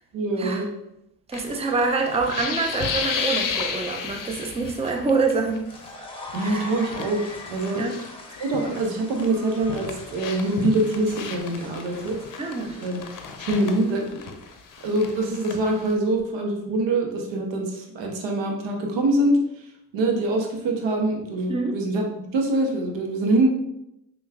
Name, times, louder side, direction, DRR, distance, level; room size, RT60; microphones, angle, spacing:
voice 1, 0.1-0.7 6.3-7.2 7.5-7.8 8.4-12.2 12.8-13.1 13.4-14.4 14.8-19.4 19.9-23.5, right 2 dB, 75° right, 2 dB, 0.7 m, -24 dB
sound 1, 1.3-5.3 5.6-5.9 6.3-8.9 9.2-15.9, left 6 dB, 50° left, 0.6 m, -33 dB
voice 2, 1.3-5.7 6.4-6.7 7.7-8.0 12.4-12.8 21.5-21.8, right 4 dB, 15° right, 3 dB, 0.5 m, -26 dB
sound 2, 5.4-14.8, left 2 dB, 10° left, 0.8 m, -42 dB
5.3 x 2.3 x 2.2 m, 0.83 s
hypercardioid pair, 45°, 44 cm